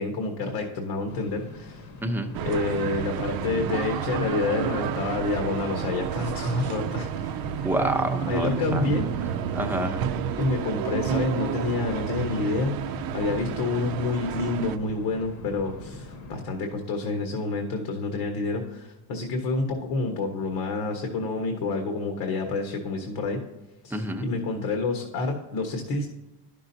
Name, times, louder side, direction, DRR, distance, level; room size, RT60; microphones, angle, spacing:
voice 1, 0.0-1.8 2.4-7.3 8.3-9.4 10.4-23.4 23.8-26.1, left 3 dB, 80° left, 3 dB, 1.5 m, -28 dB
sound 1, 1.1-16.4, left 2 dB, 45° left, 1.1 m, -42 dB
voice 2, 2.0-2.3 7.6-9.0 9.5-10.1 23.9-24.3, right 1 dB, 5° right, 2 dB, 0.8 m, -28 dB
sound 2, 2.3-14.8, right 9 dB, 60° right, 0.5 m, -31 dB
11.5 x 6.1 x 2.8 m, 1.0 s
cardioid pair, 130°, 41 cm